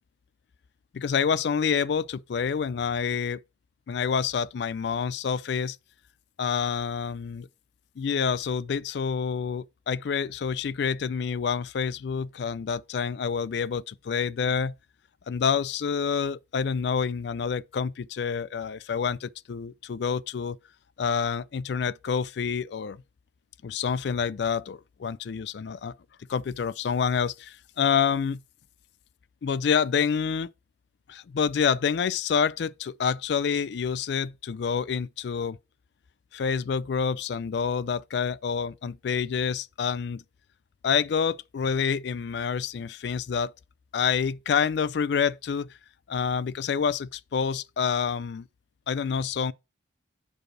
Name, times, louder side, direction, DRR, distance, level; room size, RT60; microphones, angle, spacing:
voice 1, 0.9-3.4 3.9-5.8 6.4-7.5 8.0-14.7 15.3-20.6 21.0-23.0 23.6-25.9 26.3-28.4 29.4-30.5 31.1-35.6 36.3-40.2 40.8-43.5 43.9-45.7 46.1-48.4 48.9-49.5, left 6 dB, 60° left, 0.3 m, -27 dB
5.1 x 4.8 x 6.0 m
head